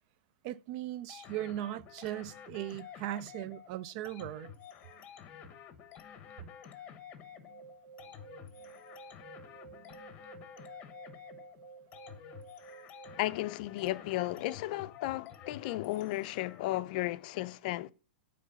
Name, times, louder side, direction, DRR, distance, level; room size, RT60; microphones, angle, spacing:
voice 1, 0.4-4.5 7.4-7.5 9.7-10.0, right 13 dB, 45° right, 0.3 m, -39 dB
sound 1, 1.1-16.8, left 8 dB, 30° left, 0.9 m, -51 dB
sound 2, 7.4-13.4, right 6 dB, 30° right, 1.4 m, -53 dB
voice 2, 13.2-17.9, left 16 dB, 50° left, 0.4 m, -34 dB
8.0 x 3.1 x 5.7 m
hypercardioid pair, 135°, 6 cm